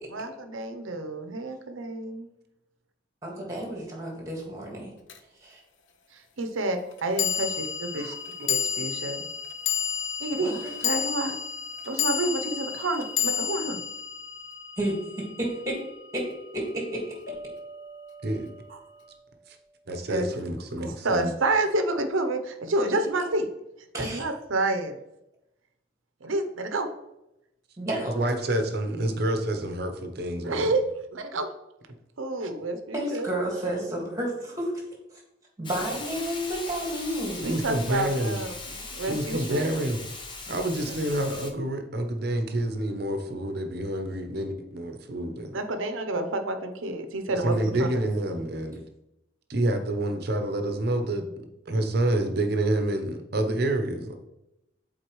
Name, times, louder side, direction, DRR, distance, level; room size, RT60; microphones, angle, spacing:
voice 1, 0.1-2.3 6.1-7.6 7.9-8.1 8.5-9.2 10.2-11.4 11.9-13.8 20.1-20.3 20.8-23.5 24.0-25.0 26.2-26.9 30.4-30.8 31.1-31.5 32.2-33.3 37.4-39.7 45.5-48.0, right 2 dB, 85° right, 7 dB, 0.7 m, -29 dB
voice 2, 3.2-4.9 5.4-5.6 10.4-10.8 14.8-15.8 16.1-16.3 16.5-17.0 23.9-24.2 27.8-28.2 32.9-34.7 35.6-37.5 47.5-47.6, right 1 dB, 15° right, -1 dB, 1.7 m, -31 dB
sound 1, 5.1-5.2 7.2-15.6, left 8 dB, 70° left, 0.6 m, -31 dB
sound 2, 17.3-20.2, equal, 50° left, 1.3 m, -45 dB
voice 3, 19.9-21.3 28.1-30.7 37.4-38.4 39.0-40.0 40.5-45.6 47.3-48.8 49.5-51.3 51.7-54.1, right 1 dB, 50° right, 6 dB, 0.8 m, -28 dB
Hiss, 35.6-41.5, left 3 dB, 25° left, 0.6 m, -39 dB
8.0 x 4.0 x 3.1 m, 0.90 s
head